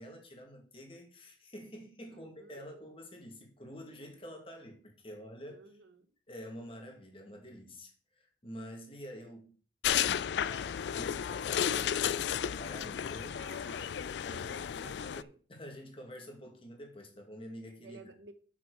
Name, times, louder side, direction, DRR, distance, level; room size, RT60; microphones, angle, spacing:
voice 1, 0.0-5.6 6.3-9.5 9.9-14.9 15.2-18.1, equal, 30° left, 2.0 m, -48 dB
voice 2, 2.0-2.7 5.5-6.1 13.3-14.0 14.3-15.3 17.8-18.3, right 4 dB, 85° right, 1.0 m, -54 dB
sound 1, 9.8-15.2, left 9 dB, 75° left, 0.3 m, -33 dB
7.6 x 6.0 x 4.7 m
head